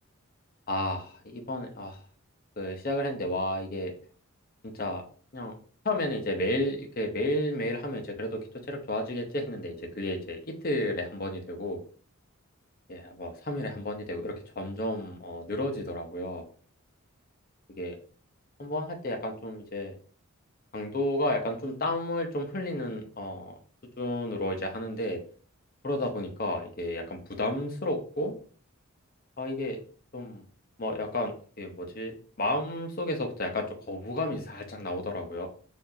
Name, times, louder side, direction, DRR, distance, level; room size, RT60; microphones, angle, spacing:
voice 1, 0.7-2.0 2.6-3.9 4.8-5.0 5.3-5.5 5.8-8.4 8.7-11.8 12.9-16.5 17.8-17.9 18.6-20.0 20.7-23.5 24.0-25.2 25.8-28.3 29.4-29.8 30.1-30.4 30.8-35.5, left 1 dB, 45° left, 3 dB, 0.7 m, -32 dB
4.6 x 2.6 x 2.7 m, 0.42 s
head